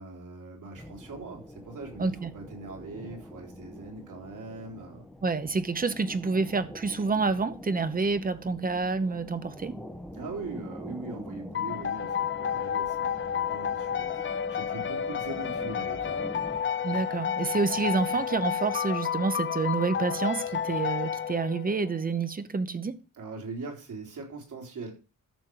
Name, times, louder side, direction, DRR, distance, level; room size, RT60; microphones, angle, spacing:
voice 1, 0.0-5.0 10.1-16.3 23.2-24.9, right 3 dB, 80° right, 3.6 m, -41 dB
sound 1, 0.8-16.6, equal, ahead, 1.7 m, -45 dB
voice 2, 2.0-2.3 5.2-9.8 16.8-23.0, right 4 dB, 30° right, 0.9 m, -28 dB
sound 2, 11.5-21.9, left 8 dB, 40° left, 0.6 m, -31 dB
13.5 x 6.3 x 4.7 m
wide cardioid pair, 145°, 31 cm